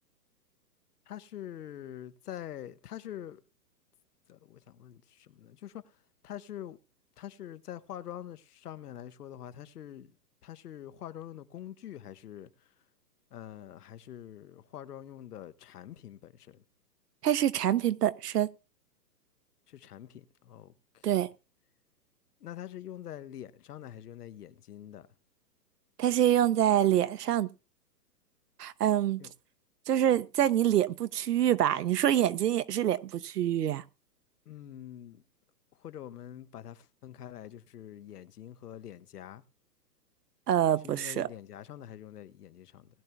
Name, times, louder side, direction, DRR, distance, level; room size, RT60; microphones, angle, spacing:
voice 1, 1.1-3.4 4.3-5.8 6.2-6.8 7.2-10.1 10.4-12.5 13.3-16.6 19.7-21.1 22.4-25.1 29.2-29.3 34.5-35.2 35.8-39.4 40.8-42.9, left 11 dB, 65° left, 1.2 m, -45 dB
voice 2, 17.2-18.5 21.0-21.3 26.0-27.5 28.6-29.2 29.9-33.8 40.5-41.3, right 11 dB, 70° right, 1.0 m, -26 dB
20.0 x 10.5 x 2.3 m
hypercardioid pair, 150°, 49 cm